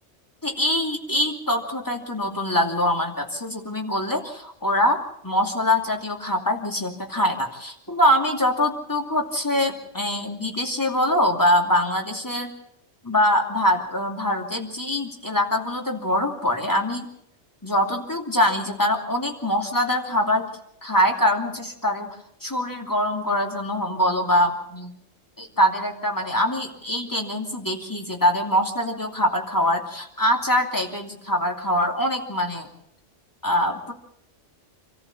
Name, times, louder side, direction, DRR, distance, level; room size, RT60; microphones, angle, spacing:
voice 1, 0.4-12.5 13.0-17.1 17.6-20.5 20.8-22.1 22.4-24.9 25.4-32.7 33.4-33.9, left 1 dB, 15° left, 1 dB, 2.8 m, -23 dB
27.0 x 14.0 x 7.3 m, 0.73 s
omnidirectional pair, 1.3 m